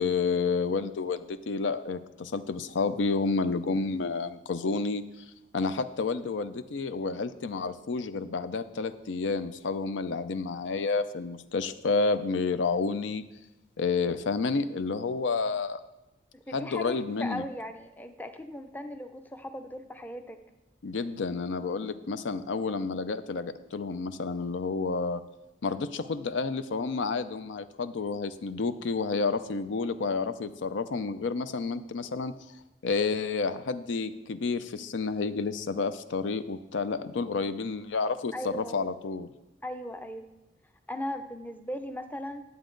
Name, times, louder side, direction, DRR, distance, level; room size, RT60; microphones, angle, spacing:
voice 1, 0.0-5.0 5.5-13.2 13.8-15.8 16.5-17.4 20.8-25.2 25.6-32.4 32.8-39.3, left 4 dB, 85° left, 12 dB, 0.5 m, -30 dB
voice 2, 16.3-20.4 38.3-38.8 39.6-40.3 40.9-42.4, left 1 dB, 10° left, 7 dB, 0.5 m, -38 dB
11.0 x 8.1 x 3.8 m, 0.96 s
head